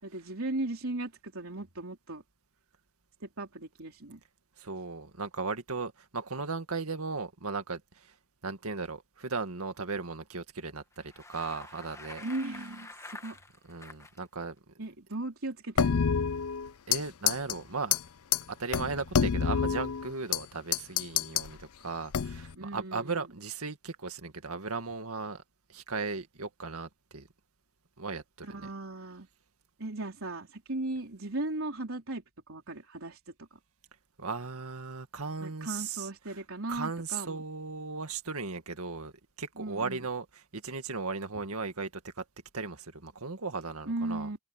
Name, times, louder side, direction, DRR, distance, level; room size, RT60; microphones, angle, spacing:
voice 1, 0.0-2.2 3.2-4.2 12.2-13.4 14.8-16.0 22.6-23.3 28.4-29.3 29.8-33.6 35.4-37.4 39.6-40.0 43.9-44.4, right 2 dB, 70° right, 4.0 m, -37 dB
voice 2, 4.6-8.2 8.4-12.2 13.7-14.6 16.9-18.0 18.5-25.4 25.7-27.3 28.0-28.7 34.2-36.4 36.7-39.1 39.4-42.2 42.5-44.3, right 4 dB, 85° right, 2.0 m, -37 dB
Bicycle, 10.9-14.2, left 2 dB, 15° left, 1.3 m, -48 dB
sound 1, 15.8-17.0 17.3-17.5 17.9-18.0 18.3-18.4 18.7-20.4 20.7-21.5 22.1-22.5, left 7 dB, 90° left, 0.5 m, -27 dB
head